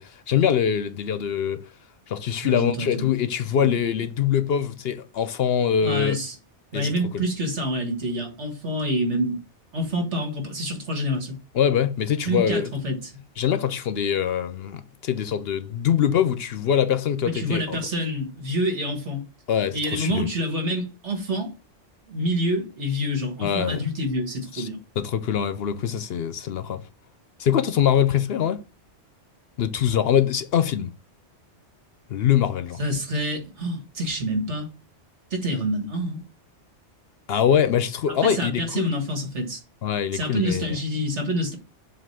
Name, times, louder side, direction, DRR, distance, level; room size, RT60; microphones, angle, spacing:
voice 1, 0.0-1.7 2.1-6.2 6.7-7.2 11.5-12.7 13.4-17.8 19.5-20.3 23.4-23.9 24.5-24.7 25.0-26.8 27.4-28.6 29.6-30.9 32.1-32.8 37.3-38.9 39.8-40.6, left 9 dB, 65° left, 0.8 m, -23 dB
voice 2, 2.4-3.1 3.6-3.7 5.8-6.4 6.7-9.4 9.7-11.4 12.2-13.1 17.2-19.2 19.7-21.5 22.1-24.8 32.8-34.7 35.3-36.2 38.2-39.6 40.1-41.5, equal, 70° right, 2.0 m, -27 dB
7.5 x 2.9 x 5.6 m
omnidirectional pair, 1.2 m